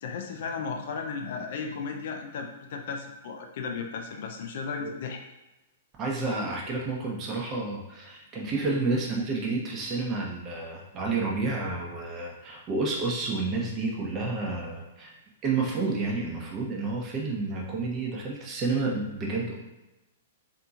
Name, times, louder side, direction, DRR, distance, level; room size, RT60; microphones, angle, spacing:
voice 1, 0.0-5.2 8.5-8.8, left 5 dB, 60° left, 3 dB, 0.4 m, -35 dB
voice 2, 6.0-15.1 15.4-19.5, right 3 dB, 30° right, -1 dB, 0.7 m, -30 dB
2.8 x 2.6 x 2.3 m, 1.0 s
hypercardioid pair, 120°, 0 cm